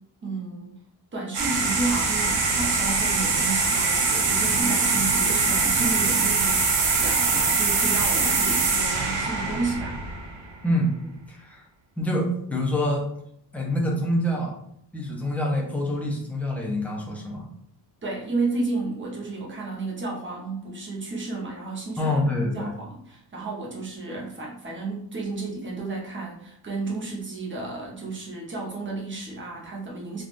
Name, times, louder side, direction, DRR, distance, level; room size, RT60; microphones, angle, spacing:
voice 1, 0.2-0.8 1.1-10.0 18.0-30.2, right 3 dB, 25° right, -3 dB, 0.8 m, -32 dB
sound 1, 1.3-10.5, right 4 dB, 65° right, 0.8 m, -23 dB
voice 2, 11.3-11.6 12.0-13.1 13.5-14.6 14.9-17.5 22.0-22.7, left 1 dB, 5° left, -2 dB, 0.5 m, -26 dB
3.4 x 2.3 x 2.5 m, 0.69 s
cardioid pair, 140°, 45 cm